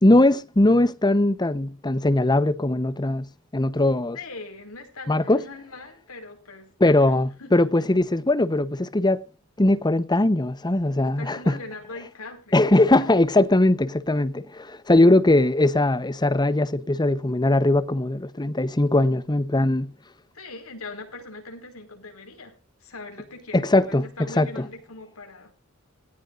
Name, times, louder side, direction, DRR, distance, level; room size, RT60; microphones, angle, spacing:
voice 1, 0.0-3.3 3.5-4.2 5.1-5.4 6.8-9.3 9.6-11.5 12.5-19.9 23.5-24.6, left 2 dB, 20° left, 0.9 m, -20 dB
voice 2, 4.1-7.0 7.4-7.7 11.2-12.6 13.0-13.1 20.3-22.5 22.8-25.5, left 3 dB, 85° left, 4.7 m, -41 dB
17.5 x 16.5 x 2.5 m
head